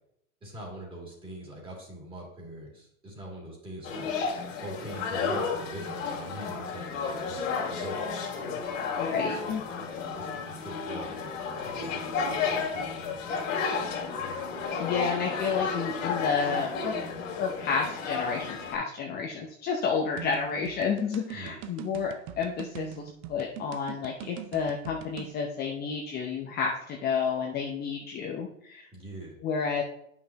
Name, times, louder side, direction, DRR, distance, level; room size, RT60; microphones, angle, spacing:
voice 1, 0.4-4.1 4.6-8.0 9.3-9.6 10.0-11.3 11.6-13.2 21.3-21.6 28.9-29.4, right 1 dB, 15° right, -3 dB, 2.8 m, -43 dB
sound 1, 3.8-18.8, left 5 dB, 70° left, 2.5 m, -32 dB
voice 2, 9.0-9.6 14.8-16.9 17.4-28.9 29.4-29.8, left 5 dB, 25° left, 0 dB, 0.7 m, -30 dB
sound 2, 20.2-25.3, right 12 dB, 35° right, 0.6 m, -42 dB
9.2 x 5.7 x 2.9 m, 0.72 s
hypercardioid pair, 130°, 40 cm